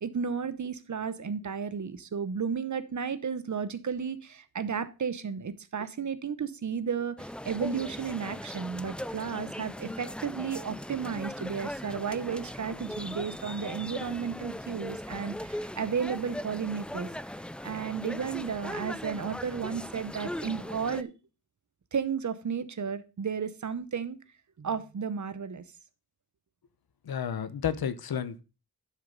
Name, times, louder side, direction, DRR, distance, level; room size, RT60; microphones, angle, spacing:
voice 1, 0.0-17.1 17.6-21.1 21.9-24.2 24.6-25.6, right 6 dB, 50° right, 14 dB, 0.9 m, -33 dB
sound 1, 7.2-21.0, left 1 dB, 5° left, 0.3 m, -39 dB
voice 2, 27.1-28.4, left 8 dB, 75° left, 14 dB, 0.9 m, -31 dB
11.0 x 6.5 x 3.9 m, 0.31 s
wide cardioid pair, 130°, 37 cm